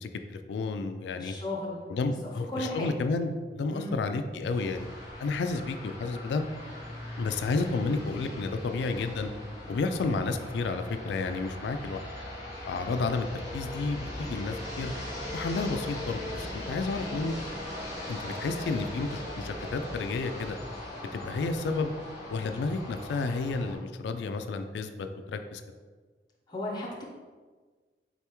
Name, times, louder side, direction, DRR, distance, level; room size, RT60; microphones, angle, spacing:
voice 1, 0.0-1.3 1.9-4.9 5.2-6.4 7.2-9.3 9.7-12.0 12.6-14.9 15.3-17.3 18.1-20.6 21.1-21.9 22.3-25.6, left 3 dB, 85° left, 8 dB, 0.3 m, -31 dB
voice 2, 1.2-1.8 2.1-2.9 3.7-4.0 26.5-27.0, left 1 dB, 25° left, -2 dB, 0.5 m, -35 dB
sound 1, 4.5-23.8, left 1 dB, 15° right, 0.8 m, -40 dB
3.9 x 3.4 x 2.9 m, 1.4 s
head